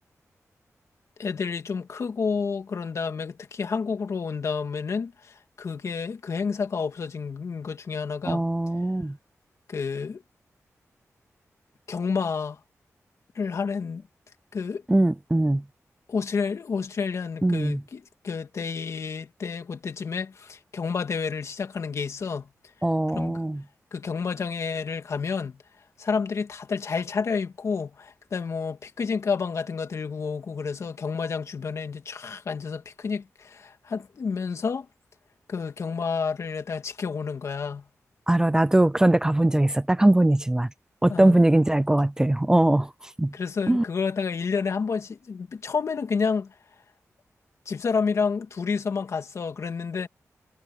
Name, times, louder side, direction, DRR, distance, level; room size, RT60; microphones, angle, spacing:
voice 1, 1.2-8.4 9.7-10.2 11.9-12.6 13.4-14.0 14.5-14.8 16.1-22.5 23.1-23.4 23.9-25.6 26.0-34.9 35.5-37.9 41.1-41.4 43.3-46.5 47.7-50.1, left 5 dB, 60° left, 2.0 m, -30 dB
voice 2, 8.2-9.2 14.9-15.6 17.4-17.8 22.8-23.6 38.3-40.7 41.0-42.9 43.2-43.3 43.7-43.8, right 1 dB, 10° right, 0.5 m, -21 dB
wide cardioid pair, 140°, 6 cm